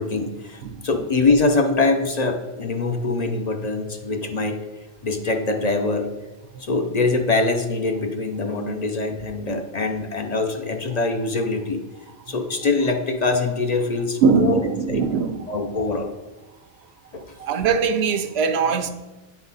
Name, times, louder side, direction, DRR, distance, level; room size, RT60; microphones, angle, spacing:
voice 1, 0.0-4.6 5.0-6.1 6.6-11.8 12.3-14.6 14.9-15.0 15.5-16.1 17.1-17.2, left 3 dB, 45° left, 0.7 m, -23 dB
voice 2, 0.6-1.1 12.3-12.4 14.2-15.4 17.4-18.9, right 5 dB, 90° right, 0.9 m, -21 dB
9.5 x 4.1 x 4.0 m
omnidirectional pair, 1.0 m